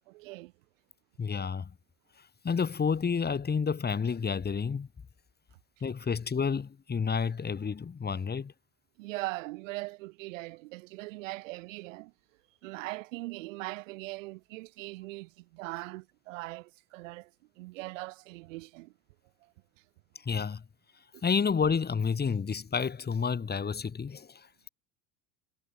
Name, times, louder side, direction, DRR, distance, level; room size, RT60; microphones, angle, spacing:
voice 1, 0.1-0.5 9.0-12.1 12.6-17.3 17.6-18.9, right 21 dB, 75° right, 2.0 m, -40 dB
voice 2, 1.2-1.7 2.4-4.9 5.8-8.5 20.3-20.6 21.2-24.5, left 6 dB, 25° left, 5.3 m, -30 dB
hypercardioid pair, 90°, 39 cm